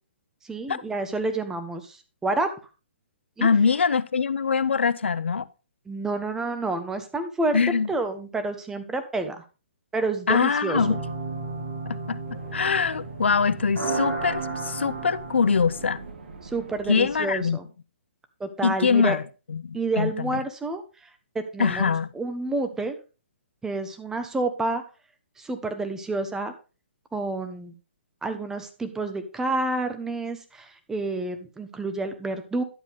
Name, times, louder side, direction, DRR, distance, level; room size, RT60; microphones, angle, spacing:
voice 1, 0.5-2.0 2.2-2.5 3.4-3.5 5.9-7.6 7.9-9.4 9.9-10.8 16.5-17.7 18.4-19.2 19.7-20.8 21.3-21.9 22.1-23.0 23.6-24.8 25.4-26.5 27.1-27.7 28.2-32.6, right 2 dB, 10° right, 1.2 m, -29 dB
voice 2, 3.4-5.5 7.5-7.9 10.3-11.0 11.9-16.0 16.9-17.6 18.6-19.2 19.5-20.4 21.6-22.1, left 5 dB, 80° left, 0.6 m, -23 dB
sound 1, 10.7-16.1, right 3 dB, 85° right, 4.2 m, -33 dB
sound 2, 12.2-17.5, right 4 dB, 70° right, 2.6 m, -44 dB
11.5 x 7.3 x 3.5 m
hypercardioid pair, 135°, 6 cm